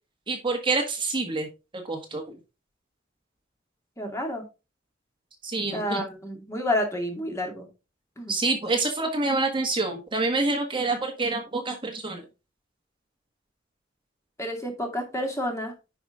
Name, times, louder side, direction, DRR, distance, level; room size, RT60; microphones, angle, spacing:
voice 1, 0.3-1.5 1.8-2.3 5.4-6.0 8.3-12.2, right 3 dB, 25° right, 3 dB, 1.5 m, -27 dB
voice 2, 4.0-4.5 5.7-7.7 8.2-8.4 14.4-15.7, left 1 dB, 15° left, 2 dB, 2.3 m, -30 dB
10.5 x 5.0 x 3.7 m, 0.29 s
head